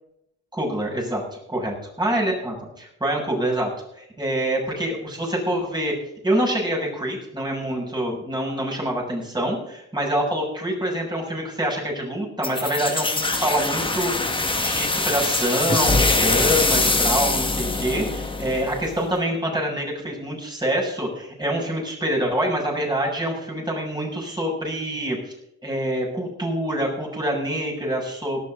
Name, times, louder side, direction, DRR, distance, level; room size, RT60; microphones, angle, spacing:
voice 1, 0.5-1.2 1.5-3.7 4.0-5.9 6.2-25.3 25.6-28.4, right 1 dB, 15° right, -1 dB, 7.4 m, -26 dB
sound 1, 12.4-19.0, left 2 dB, 15° left, 2.2 m, -23 dB
18.0 x 13.0 x 4.1 m, 0.80 s
cardioid pair, 90°, 30 cm